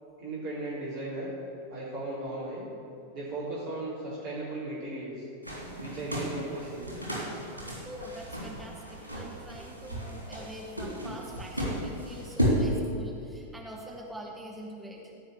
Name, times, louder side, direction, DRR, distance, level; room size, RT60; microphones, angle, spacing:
voice 1, 0.2-1.3 1.7-2.7 3.1-5.3 5.8-6.9, right 2 dB, 45° right, -9 dB, 3.8 m, -36 dB
sound 1, 5.4-12.6, equal, 85° left, 3.2 m, -34 dB
voice 2, 7.8-15.2, right 1 dB, 5° right, -2 dB, 1.5 m, -44 dB
16.5 x 5.6 x 8.1 m, 2.6 s
figure-of-eight pair, 90°, 0 cm